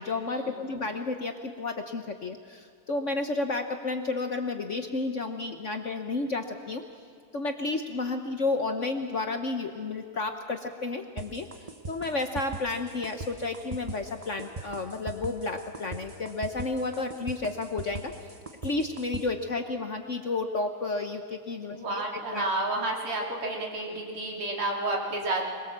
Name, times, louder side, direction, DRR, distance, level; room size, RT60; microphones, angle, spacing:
voice 1, 0.0-6.8 7.3-11.5 11.9-18.1 18.6-22.5, left 3 dB, 50° left, 5 dB, 1.0 m, -31 dB
sound 1, 11.2-19.2, right 3 dB, 30° right, 0.6 m, -39 dB
voice 2, 21.7-25.4, right 2 dB, 90° right, -1 dB, 3.9 m, -30 dB
22.5 x 21.5 x 7.4 m, 2.2 s
omnidirectional pair, 2.3 m